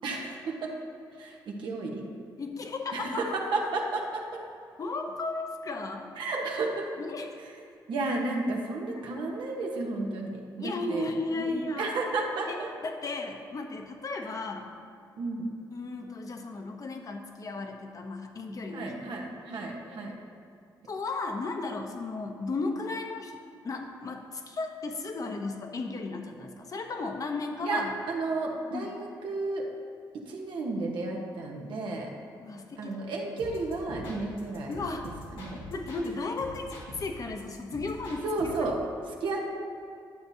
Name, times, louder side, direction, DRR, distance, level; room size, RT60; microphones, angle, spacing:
voice 1, 0.0-0.7 1.2-2.0 2.9-4.4 6.2-6.9 7.9-11.0 11.4-12.7 15.2-15.5 18.7-20.2 27.6-29.7 30.3-32.1 32.8-34.7 35.3-35.6 38.2-38.8 39.1-39.5, right 3 dB, 75° right, -1 dB, 1.2 m, -32 dB
voice 2, 2.4-3.2 4.8-6.1 7.0-7.4 10.6-11.9 12.5-12.6 12.8-14.7 15.7-19.1 20.9-23.4 23.6-27.9 28.7-28.9 32.4-33.0 34.7-35.1 35.7-38.7, left 3 dB, 45° left, 4 dB, 1.0 m, -35 dB
sound 1, 33.4-36.1 36.4-38.7, left 1 dB, 85° left, 1.9 m, -44 dB
11.0 x 6.9 x 2.8 m, 2.5 s
cardioid pair, 75°, 8 cm